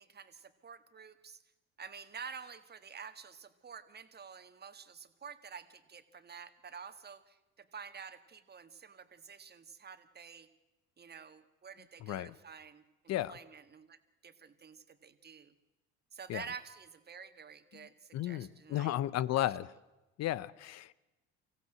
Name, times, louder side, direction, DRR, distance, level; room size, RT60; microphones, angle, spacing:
voice 1, 0.0-1.4 1.8-10.5 11.0-12.8 13.3-14.0 14.2-15.5 16.1-18.9, right 6 dB, 35° right, 10 dB, 1.7 m, -49 dB
voice 2, 12.0-12.3 13.1-13.4 16.3-16.4 17.7-19.7 20.2-20.9, left 13 dB, 60° left, 19 dB, 0.8 m, -34 dB
24.5 x 15.5 x 7.9 m, 1.1 s
supercardioid pair, 75°, 30 cm